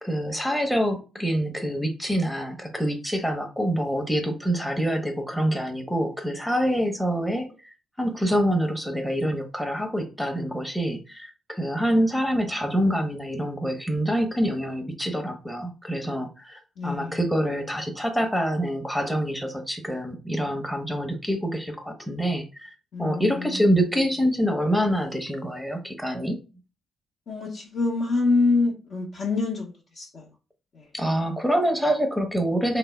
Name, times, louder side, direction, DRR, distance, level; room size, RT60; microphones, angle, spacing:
voice 1, 0.0-7.5 8.0-26.4 30.9-32.8, equal, 5° left, 0.7 m, -26 dB
voice 2, 16.8-17.2 22.9-23.7 27.3-29.7 30.0-30.2 30.7-30.8, left 3 dB, 60° left, 0.9 m, -26 dB
3.3 x 2.1 x 3.3 m
cardioid pair, 90°, 0 cm